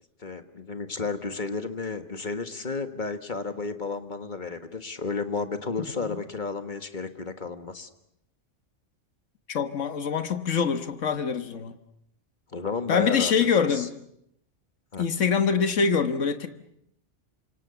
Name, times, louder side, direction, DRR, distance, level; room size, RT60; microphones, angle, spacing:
voice 1, 0.2-7.9 12.5-13.3 13.7-13.9 14.9-15.0, left 4 dB, 40° left, 8 dB, 1.7 m, -32 dB
voice 2, 9.5-11.7 12.9-13.9 15.0-16.5, left 6 dB, 80° left, 9 dB, 1.7 m, -24 dB
28.0 x 26.0 x 7.0 m, 0.78 s
omnidirectional pair, 1.3 m